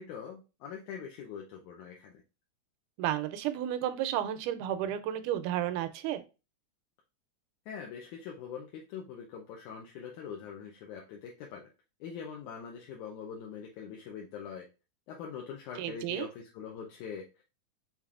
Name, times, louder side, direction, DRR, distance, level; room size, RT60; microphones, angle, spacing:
voice 1, 0.0-2.2 7.7-11.7 12.0-14.7 15.1-17.4, left 7 dB, 80° left, 0 dB, 2.1 m, -43 dB
voice 2, 3.0-6.2 15.8-16.3, right 11 dB, 80° right, 10 dB, 2.0 m, -32 dB
5.9 x 3.6 x 2.4 m, 0.29 s
omnidirectional pair, 3.6 m